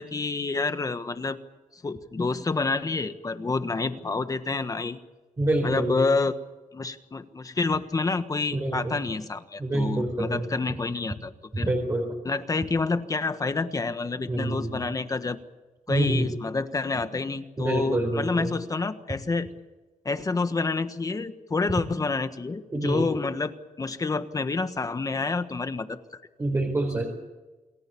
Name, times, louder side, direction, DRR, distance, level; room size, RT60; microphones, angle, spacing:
voice 1, 0.0-1.4 1.8-5.0 5.6-6.4 6.7-11.7 12.2-15.4 15.9-19.5 20.0-26.0, left 3 dB, 25° left, 9 dB, 1.4 m, -28 dB
voice 2, 5.4-5.9 8.5-8.9 9.6-10.4 11.6-12.1 14.3-14.9 15.9-16.3 17.6-18.5 22.7-23.0 26.4-27.0, right 1 dB, 25° right, 0 dB, 4.2 m, -26 dB
28.5 x 19.5 x 7.0 m, 1.2 s
wide cardioid pair, 155°, 13 cm